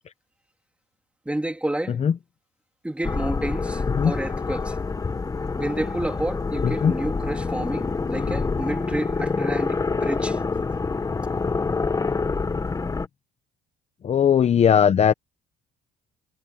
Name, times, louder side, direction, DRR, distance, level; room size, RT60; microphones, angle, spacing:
voice 1, 1.3-2.0 2.8-4.8 5.6-10.4, right 1 dB, 5° right, 2.6 m, -30 dB
sound 1, 3.0-13.1, left 4 dB, 20° left, 1.5 m, -26 dB
voice 2, 14.0-15.1, left 8 dB, 40° left, 0.9 m, -18 dB
cardioid pair, 110°, 17 cm